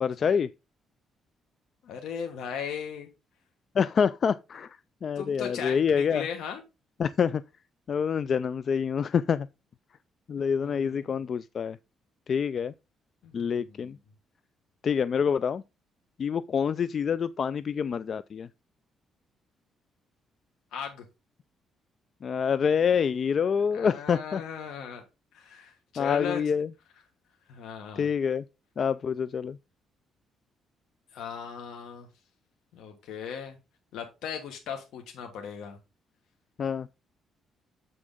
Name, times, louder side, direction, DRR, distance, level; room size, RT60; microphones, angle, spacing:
voice 1, 0.0-0.5 3.7-6.3 7.0-7.4 7.9-9.5 10.3-11.8 12.3-12.7 13.3-14.0 14.8-15.6 16.2-18.5 22.2-24.4 26.0-26.7 28.0-28.4 28.8-29.6 36.6-36.9, left 7 dB, 45° left, 0.3 m, -26 dB
voice 2, 1.8-3.1 5.2-6.6 10.4-10.9 13.2-13.5 20.7-21.0 23.7-25.0 25.3-26.4 27.5-28.1 31.1-32.1 32.7-33.6 33.9-35.8, left 7 dB, 85° left, 1.4 m, -37 dB
7.7 x 6.2 x 3.7 m
cardioid pair, 120°, 0 cm